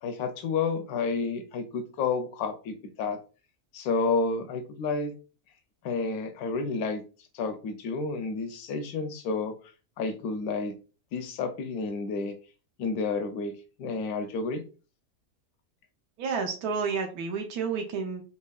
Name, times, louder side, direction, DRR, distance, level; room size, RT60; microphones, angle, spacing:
voice 1, 0.0-3.2 3.7-5.1 5.8-7.0 7.3-9.5 10.0-10.7 11.1-12.3 12.8-13.5 13.8-14.6, left 4 dB, 85° left, 6 dB, 1.1 m, -30 dB
voice 2, 16.2-18.2, right 5 dB, 90° right, 4 dB, 1.2 m, -30 dB
4.4 x 2.9 x 2.3 m, 0.34 s
omnidirectional pair, 1.6 m